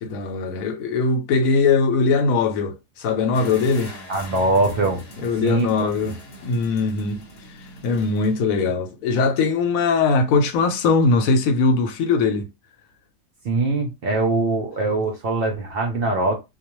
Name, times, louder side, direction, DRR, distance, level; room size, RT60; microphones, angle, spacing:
voice 1, 0.0-3.9 5.2-6.2 6.4-7.2 7.8-12.5, left 4 dB, 90° left, 1.0 m, -20 dB
sound 1, 3.3-8.4, left 1 dB, 55° left, 0.9 m, -42 dB
voice 2, 4.1-5.0 5.4-6.1 13.4-16.4, right 2 dB, 65° right, 0.6 m, -22 dB
2.3 x 2.2 x 2.9 m
omnidirectional pair, 1.4 m